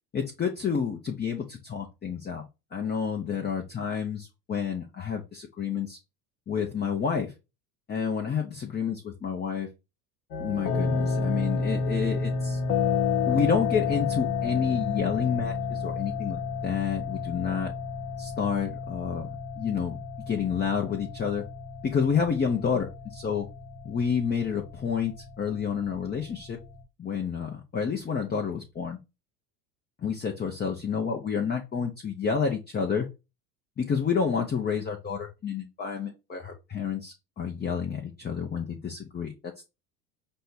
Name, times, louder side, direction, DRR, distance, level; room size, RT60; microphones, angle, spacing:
voice 1, 0.1-2.4 2.7-6.0 6.5-7.3 7.9-9.7 10.4-12.6 13.3-17.7 18.2-20.0 20.3-21.4 21.8-23.5 23.8-26.6 27.0-29.0 30.0-33.1 33.8-39.7, left 6 dB, 20° left, 2 dB, 0.8 m, -29 dB
sound 1, 10.3-26.8, left 5 dB, 90° left, 0.9 m, -31 dB
5.4 x 2.2 x 4.1 m, 0.26 s
hypercardioid pair, 75°, 48 cm